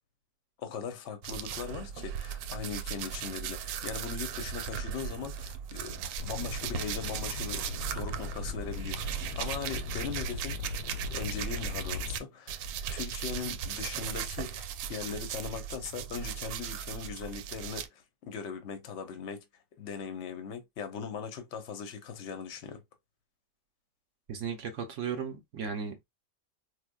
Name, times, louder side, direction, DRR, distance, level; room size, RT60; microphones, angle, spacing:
voice 1, 0.6-10.8 11.1-12.6 12.9-19.5 19.8-22.8, left 6 dB, 55° left, 0.9 m, -39 dB
sound 1, 1.2-12.2 12.5-17.9, right 9 dB, 90° right, 1.3 m, -37 dB
sound 2, 6.2-12.2, left 4 dB, 75° left, 1.2 m, -39 dB
voice 2, 24.3-26.0, right 6 dB, 65° right, 0.8 m, -35 dB
4.8 x 2.1 x 2.2 m
omnidirectional pair, 1.9 m